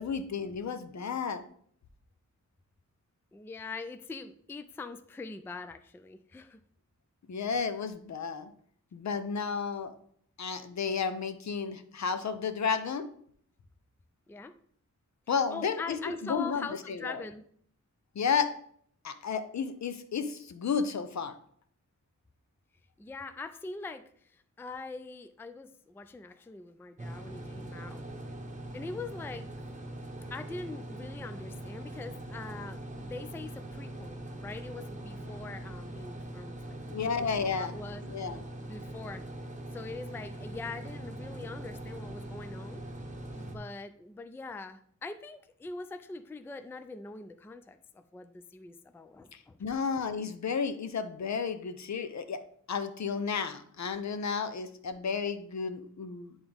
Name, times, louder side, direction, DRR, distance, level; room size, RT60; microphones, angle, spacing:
voice 1, 0.0-1.4 7.3-8.5 8.9-9.9 10.4-13.0 15.3-17.2 18.1-18.5 19.0-21.3 36.9-37.7 38.1-38.4 49.3-52.4 52.7-56.4, left 6 dB, 65° left, 10 dB, 0.7 m, -32 dB
voice 2, 3.3-6.6 14.3-14.5 15.5-17.4 23.0-28.0 28.7-29.5 30.3-38.0 38.7-39.2 39.7-42.8 43.3-49.6, left 3 dB, 10° left, 10 dB, 0.3 m, -43 dB
sound 1, 27.0-43.6, right 1 dB, 25° right, 1.0 m, -42 dB
9.7 x 3.6 x 3.5 m, 0.62 s
wide cardioid pair, 110°, 30 cm